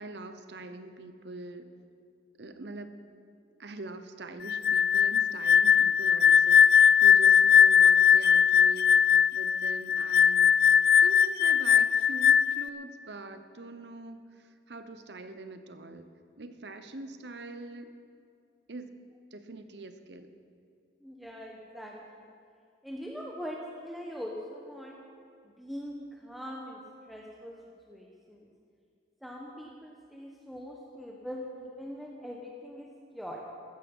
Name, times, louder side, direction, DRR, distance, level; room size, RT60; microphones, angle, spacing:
voice 1, 0.0-1.7 2.4-2.9 3.6-10.5 11.0-14.2 14.7-16.1 16.4-17.9 18.7-18.9 19.3-20.3, right 2 dB, 75° right, 9 dB, 0.9 m, -43 dB
sound 1, 4.5-12.7, left 7 dB, 55° left, 0.3 m, -20 dB
voice 2, 21.0-22.2 22.8-25.0 25.6-26.8 27.1-27.6 27.9-28.5 29.2-32.9 33.1-33.4, equal, ahead, -2 dB, 1.0 m, -42 dB
15.0 x 13.5 x 5.5 m, 2.4 s
head